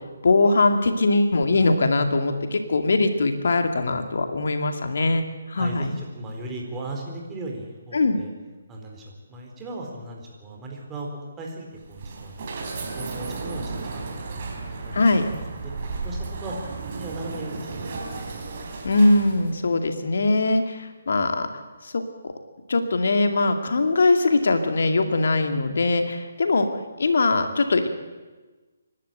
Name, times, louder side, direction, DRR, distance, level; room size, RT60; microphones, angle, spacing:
voice 1, 0.2-5.2 5.5-5.9 7.9-8.2 14.9-15.3 18.8-21.5 21.8-22.3 22.7-26.7 27.0-27.9, left 2 dB, 60° left, 7 dB, 2.4 m, -21 dB
voice 2, 5.5-8.3 8.7-11.1 11.4-12.4 12.9-14.9 15.3-15.7 16.0-18.2, right 2 dB, 15° right, -1 dB, 4.4 m, -37 dB
sound 1, 11.7-19.6, right 3 dB, 40° right, 4.6 m, -34 dB
26.0 x 12.0 x 9.0 m, 1.3 s
figure-of-eight pair, 140°, 0 cm